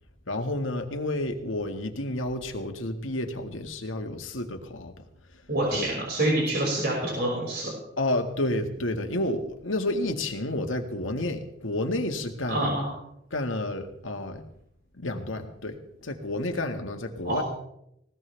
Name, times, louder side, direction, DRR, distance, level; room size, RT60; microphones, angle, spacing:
voice 1, 0.3-4.9 5.7-5.8 8.0-12.8 13.3-14.4 15.0-17.4, left 1 dB, 85° left, 4 dB, 2.0 m, -30 dB
voice 2, 5.5-7.7 12.5-12.9 17.2-17.4, right 1 dB, 55° right, -4 dB, 5.7 m, -26 dB
19.5 x 18.0 x 3.5 m, 0.76 s
head